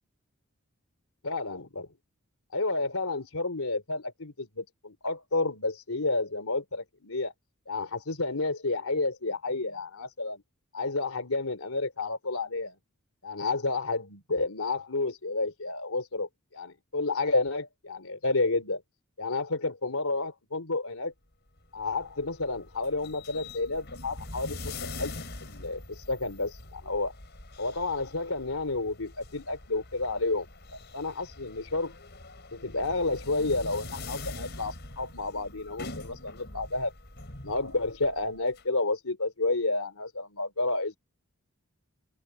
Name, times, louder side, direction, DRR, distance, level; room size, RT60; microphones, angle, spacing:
voice 1, 1.2-1.9 2.5-7.3 7.7-10.4 10.7-12.8 13.2-18.8 19.2-21.1 21.7-25.1 25.4-27.1 27.6-30.5 30.7-31.9 32.5-36.9 37.4-41.0, left 3 dB, 90° left, 3.5 m, -30 dB
sound 1, 21.6-38.6, left 2 dB, 50° left, 4.9 m, -44 dB
open air
head